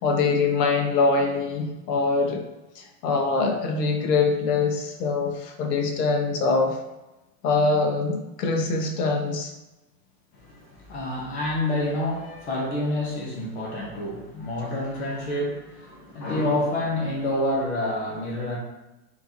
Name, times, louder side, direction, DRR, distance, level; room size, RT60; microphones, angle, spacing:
voice 1, 0.0-2.4 2.8-6.8 7.4-9.5, left 4 dB, 70° left, 3 dB, 1.1 m, -23 dB
voice 2, 10.3-18.6, left 1 dB, 40° left, -3 dB, 1.2 m, -28 dB
4.5 x 3.9 x 2.9 m, 1.0 s
supercardioid pair, 175°, 49 cm